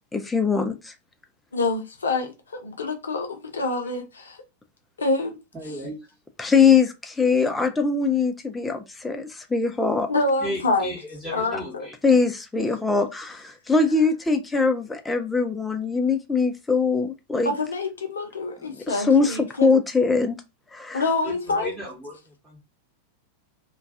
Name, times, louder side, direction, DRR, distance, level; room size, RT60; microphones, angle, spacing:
voice 1, 0.1-0.9 6.4-10.1 12.0-17.5 18.7-20.4 20.7-21.0, left 4 dB, 10° left, 0.4 m, -22 dB
voice 2, 1.5-4.4 5.0-5.4 10.1-10.9 11.3-11.9 17.5-19.7 20.9-21.7, left 3 dB, 70° left, 0.6 m, -26 dB
voice 3, 5.5-6.0 10.4-11.9 21.2-22.6, left 1 dB, 10° right, 0.9 m, -35 dB
2.3 x 2.2 x 2.5 m
figure-of-eight pair, 90°, 0 cm